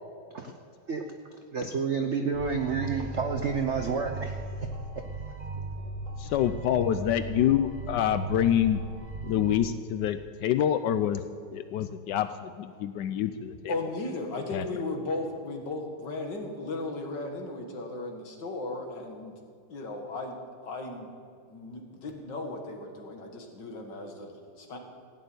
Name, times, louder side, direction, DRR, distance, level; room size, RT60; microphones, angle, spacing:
voice 1, 1.5-4.4 5.3-5.5, right 5 dB, 85° right, 5 dB, 0.6 m, -30 dB
sound 1, 2.3-9.5, right 2 dB, 30° right, 0.7 m, -37 dB
voice 2, 6.2-8.8 9.2-11.2 11.5-13.7 14.5-14.6, left 10 dB, 90° left, 11 dB, 0.9 m, -27 dB
voice 3, 13.7-19.3 19.7-20.4 20.6-21.1 21.5-24.8, left 2 dB, 55° left, 3 dB, 2.3 m, -36 dB
16.5 x 6.8 x 9.4 m, 2.3 s
omnidirectional pair, 2.4 m